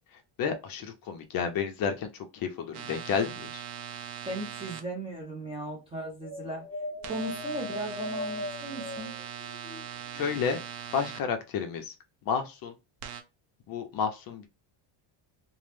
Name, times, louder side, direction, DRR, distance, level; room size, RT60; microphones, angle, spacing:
voice 1, 0.4-3.6 10.1-10.6 10.9-11.9 12.3-12.7 13.7-14.5, left 6 dB, 45° left, 0.5 m, -31 dB
sound 1, 2.7-4.8 7.0-11.2 13.0-13.2, right 8 dB, 85° right, 0.7 m, -40 dB
voice 2, 4.3-6.7 7.0-9.2, right 1 dB, 15° right, 0.4 m, -37 dB
sound 2, 6.2-10.5, left 2 dB, 5° left, 0.7 m, -39 dB
2.7 x 2.0 x 3.2 m
cardioid pair, 175°, 49 cm